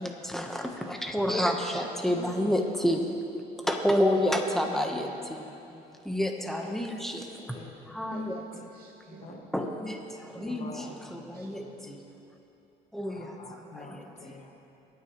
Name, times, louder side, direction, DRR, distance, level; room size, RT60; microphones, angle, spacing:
voice 1, 0.0-3.0 3.6-5.4 6.0-7.6 7.9-8.4 9.5-10.7 11.1-12.0 12.9-13.3 13.9-14.0, equal, ahead, 2 dB, 1.3 m, -29 dB
voice 2, 1.7-2.5 3.0-3.7 8.1-9.8 10.1-10.5 10.9-11.0 11.3-11.5, right 8 dB, 60° right, 3 dB, 0.7 m, -48 dB
voice 3, 2.2-2.6 4.7-5.4 5.7-5.8 7.5-8.6 9.1-9.5 10.5-11.8 13.0-14.5, left 3 dB, 40° left, 0 dB, 2.1 m, -47 dB
23.5 x 9.3 x 3.3 m, 2.8 s
cardioid pair, 110°, 17 cm